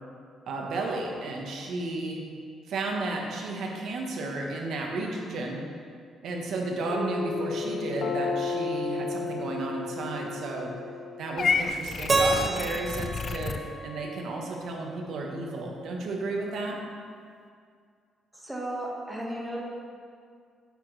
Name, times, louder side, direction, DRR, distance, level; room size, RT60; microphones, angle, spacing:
voice 1, 0.5-2.2 2.7-5.6 6.2-10.7 11.2-13.6 13.8-16.8, right 2 dB, 70° right, 0 dB, 1.4 m, -33 dB
sound 1, 6.9-11.9, left 4 dB, 65° left, 0.8 m, -33 dB
Purr / Meow, 11.4-13.6, left 5 dB, 45° left, 0.4 m, -30 dB
Keyboard (musical), 12.1-15.1, right 2 dB, 35° right, 0.8 m, -30 dB
voice 2, 18.3-19.6, right 1 dB, 10° right, -3 dB, 1.8 m, -34 dB
8.6 x 8.2 x 3.4 m, 2.2 s
cardioid pair, 90°, 0 cm